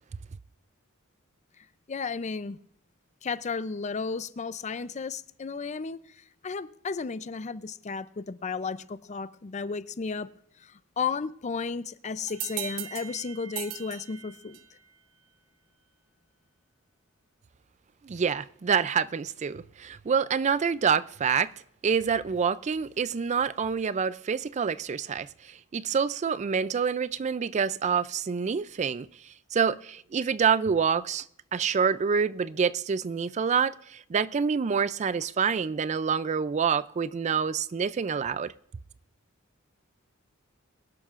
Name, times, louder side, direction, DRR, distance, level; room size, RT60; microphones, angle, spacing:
voice 1, 1.6-2.6 3.2-10.3 10.6-14.6, left 5 dB, 35° left, 0.5 m, -34 dB
sound 1, 12.3-14.8, right 10 dB, 75° right, 1.0 m, -38 dB
voice 2, 18.0-21.5 21.8-31.3 31.5-38.5, right 6 dB, 35° right, 0.4 m, -27 dB
23.0 x 12.0 x 2.5 m
head